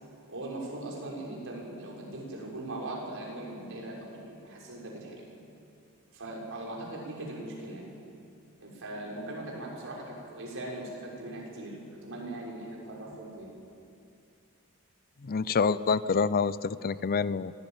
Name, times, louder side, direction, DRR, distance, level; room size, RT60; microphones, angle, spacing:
voice 1, 0.3-5.2 6.1-7.9 8.6-13.5, right 1 dB, 60° right, -3 dB, 6.2 m, -40 dB
voice 2, 15.3-17.5, left 5 dB, 45° left, 16 dB, 0.5 m, -27 dB
24.0 x 17.5 x 9.1 m, 2.5 s
head